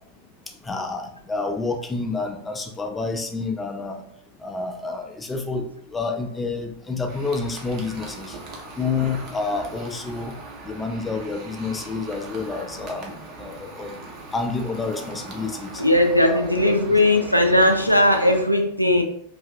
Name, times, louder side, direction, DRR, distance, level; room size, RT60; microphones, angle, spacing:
voice 1, 0.6-4.0 4.4-8.4 8.8-10.3 10.6-13.1 13.4-14.0 14.3-15.8 16.2-17.0 17.6-17.7, left 4 dB, 10° left, 4 dB, 0.4 m, -29 dB
sound 1, 7.1-18.4, right 2 dB, 35° right, 0.6 m, -40 dB
voice 2, 15.8-19.0, left 1 dB, 90° left, 3 dB, 0.3 m, -18 dB
2.6 x 2.4 x 2.3 m, 0.68 s
figure-of-eight pair, 90°, 0 cm